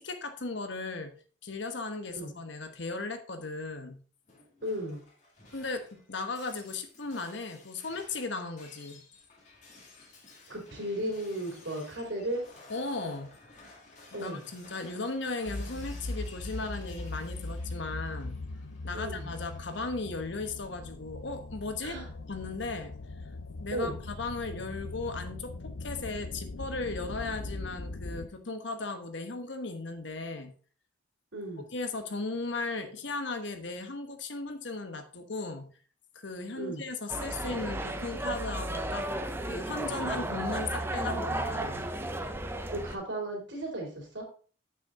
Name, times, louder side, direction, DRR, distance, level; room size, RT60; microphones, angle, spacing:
voice 1, 0.0-4.0 5.5-9.0 12.7-13.4 14.1-18.4 18.8-22.0 22.3-22.9 23.6-30.5 31.7-35.7 36.2-39.1 39.4-41.9, left 3 dB, 65° left, 7 dB, 1.2 m, -36 dB
Shatter, 4.3-19.9, left 3 dB, 35° left, 2.2 m, -55 dB
voice 2, 4.6-5.0 10.5-12.4 14.1-14.4 18.9-19.3 21.8-22.1 23.7-23.9 31.3-31.7 36.6-36.8 42.5-44.3, right 1 dB, 65° right, 0 dB, 3.5 m, -35 dB
sound 1, 15.5-28.3, left 2 dB, 90° left, 0.7 m, -40 dB
sound 2, 37.1-43.0, right 1 dB, 10° right, 0.6 m, -34 dB
8.5 x 6.2 x 3.8 m, 0.40 s
head